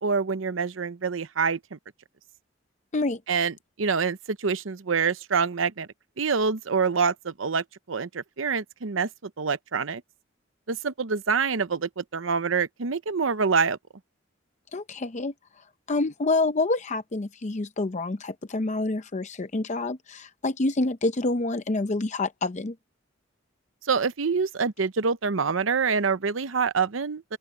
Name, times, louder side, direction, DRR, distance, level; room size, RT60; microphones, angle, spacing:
voice 1, 0.0-1.8 3.3-5.9 6.2-9.1 9.4-10.0 10.7-13.8 23.9-27.4, right 5 dB, 80° right, 0.8 m, -26 dB
voice 2, 14.7-22.8, left 2 dB, 35° left, 0.7 m, -27 dB
open air
head